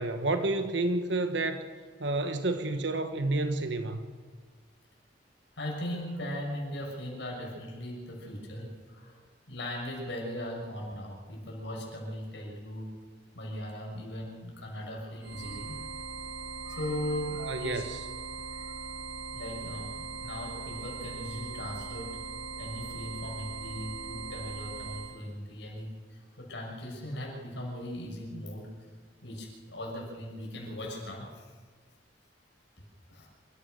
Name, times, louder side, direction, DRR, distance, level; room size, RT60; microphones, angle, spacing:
voice 1, 0.0-1.7 2.0-4.1 17.4-18.0, right 2 dB, 75° right, 8 dB, 1.4 m, -30 dB
voice 2, 5.5-9.2 9.5-12.9 13.3-15.8 16.6-17.9 18.5-18.9 19.3-22.2 22.6-28.7 29.2-31.5 33.1-33.3, left 1 dB, 75° left, -1 dB, 6.7 m, -38 dB
sound 1, 15.2-25.2, right 4 dB, 90° right, 1.7 m, -40 dB
27.5 x 14.5 x 6.6 m, 1.5 s
head